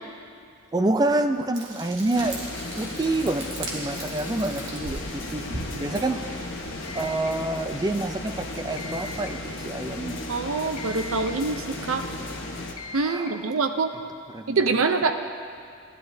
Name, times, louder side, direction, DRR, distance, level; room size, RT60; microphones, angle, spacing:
voice 1, 0.7-2.4 2.7-6.5 6.9-10.2 13.1-13.4 14.3-15.1, right 2 dB, 20° right, 7 dB, 0.3 m, -28 dB
Frying (food), 1.5-6.9, right 1 dB, 55° right, 1.5 m, -38 dB
sound 1, 2.1-12.7, left 2 dB, 60° left, 1.0 m, -35 dB
sound 2, 6.9-7.5 8.8-9.4 10.8-11.5 12.8-13.4, left 2 dB, 90° left, 0.6 m, -40 dB
voice 2, 10.3-12.0 12.9-13.9 14.5-15.1, right 4 dB, 75° right, 7 dB, 0.6 m, -25 dB
14.5 x 10.5 x 2.7 m, 2.4 s
head